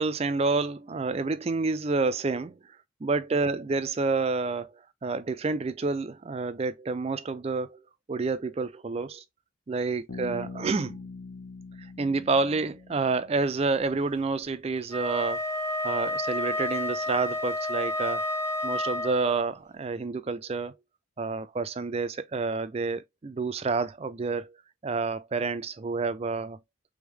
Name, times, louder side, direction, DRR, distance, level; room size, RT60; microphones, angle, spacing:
voice 1, 0.0-2.6 3.0-4.7 5.0-7.8 8.1-9.2 9.7-11.0 12.0-15.4 15.8-18.2 18.6-20.8 21.2-24.5 24.8-26.6, right 3 dB, 30° right, 0.4 m, -29 dB
Bass guitar, 10.1-13.8, left 3 dB, 60° left, 1.0 m, -43 dB
Wind instrument woodwind instrument, 14.8-19.5, left 1 dB, 15° left, 0.9 m, -30 dB
3.6 x 3.5 x 3.4 m
head